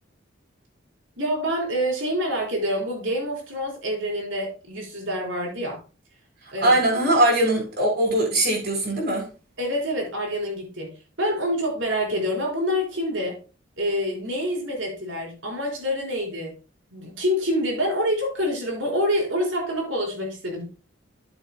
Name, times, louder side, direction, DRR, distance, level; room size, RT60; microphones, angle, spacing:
voice 1, 1.2-5.8 6.5-7.2 9.6-13.4 13.8-16.6 16.9-20.6, equal, 70° right, -1 dB, 4.3 m, -27 dB
voice 2, 6.6-9.2, right 1 dB, 50° right, -1 dB, 4.3 m, -21 dB
13.0 x 7.8 x 2.2 m, 0.34 s
head